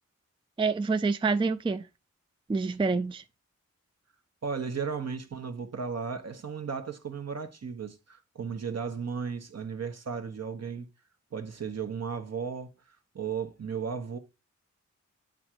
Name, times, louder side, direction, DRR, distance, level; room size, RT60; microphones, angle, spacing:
voice 1, 0.6-1.9 2.5-3.2, right 4 dB, 15° right, 0.4 m, -27 dB
voice 2, 4.4-10.9 11.3-14.2, right 6 dB, 60° right, 1.2 m, -35 dB
8.3 x 3.8 x 4.5 m
cardioid pair, 65°, 29 cm